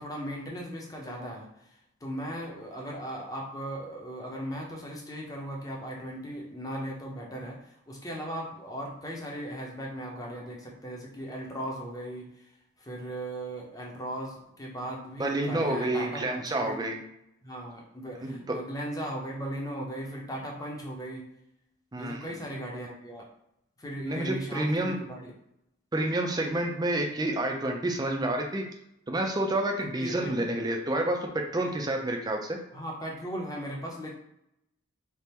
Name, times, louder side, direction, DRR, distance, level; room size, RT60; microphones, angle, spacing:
voice 1, 0.0-1.5 2.0-12.5 12.8-16.8 17.4-21.3 22.0-23.2 23.8-25.3 30.0-30.4 32.7-34.1, equal, 15° left, -2 dB, 0.7 m, -37 dB
voice 2, 15.2-17.0 18.2-18.6 21.9-22.2 24.1-25.0 25.9-28.6 29.1-32.6, right 1 dB, 20° right, 2 dB, 0.4 m, -29 dB
3.5 x 2.5 x 4.3 m, 0.79 s
head